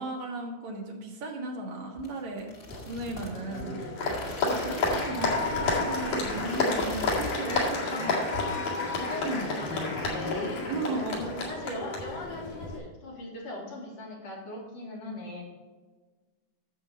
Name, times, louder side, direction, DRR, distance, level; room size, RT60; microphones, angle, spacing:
voice 1, 0.0-2.5 2.8-3.8 4.4-8.2 9.2-9.4 10.6-11.3, right 2 dB, 60° right, 0 dB, 2.9 m, -35 dB
sound 1, 2.0-5.4 5.6-5.9 6.2-7.4 7.7-8.0 8.3-9.3, left 1 dB, 35° left, 1.3 m, -43 dB
Applause, 2.7-12.8, left 3 dB, 80° left, 3.9 m, -30 dB
voice 2, 7.2-8.2 8.9-10.6 11.2-15.4, left 2 dB, 50° left, -5 dB, 3.7 m, -39 dB
11.0 x 7.6 x 4.1 m, 1.3 s
omnidirectional pair, 3.8 m